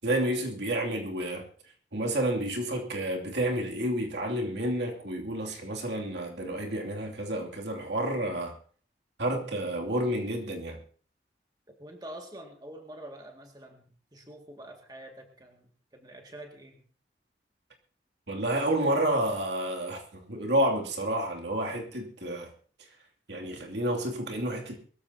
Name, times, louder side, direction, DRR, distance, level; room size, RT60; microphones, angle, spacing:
voice 1, 0.0-1.5 1.9-8.5 9.2-10.8 18.3-20.0 20.3-22.5 23.3-24.8, right 1 dB, 75° right, 2.7 m, -30 dB
voice 2, 11.8-16.8, right 1 dB, 20° right, 2.1 m, -46 dB
22.5 x 14.0 x 2.8 m
head